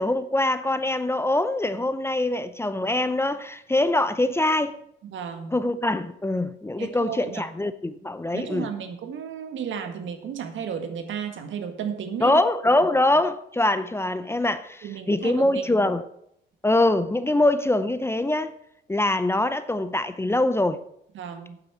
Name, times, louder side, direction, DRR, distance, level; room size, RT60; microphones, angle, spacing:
voice 1, 0.0-4.8 5.5-8.7 12.2-16.0 16.6-18.5 18.9-20.8, left 1 dB, 10° left, 0.7 m, -23 dB
voice 2, 5.0-5.5 6.8-7.5 8.3-12.4 14.8-15.9 21.1-21.6, right 7 dB, 75° right, 1.8 m, -33 dB
8.7 x 7.7 x 7.2 m
cardioid pair, 90°, 20 cm